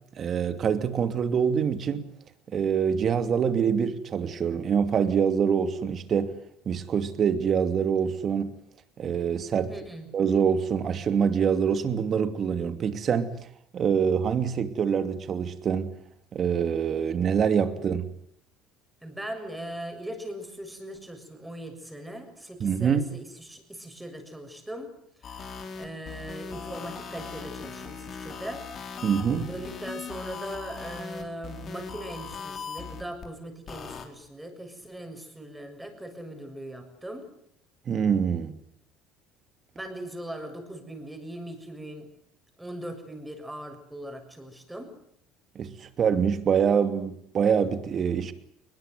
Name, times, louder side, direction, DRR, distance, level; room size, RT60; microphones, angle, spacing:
voice 1, 0.2-2.1 2.5-6.3 6.7-8.5 9.0-9.7 10.1-13.3 13.7-16.0 16.3-18.0 22.6-23.1 29.0-29.5 37.9-38.6 45.5-48.3, right 7 dB, 40° right, 2.7 m, -25 dB
voice 2, 9.7-10.1 19.0-24.9 25.2-28.6 29.5-37.3 39.8-42.1 42.6-44.9, right 1 dB, 5° right, 6.9 m, -40 dB
sound 1, 25.2-33.3 33.7-34.1, left 5 dB, 45° left, 4.8 m, -39 dB
21.5 x 21.5 x 9.4 m
supercardioid pair, 95°, 0 cm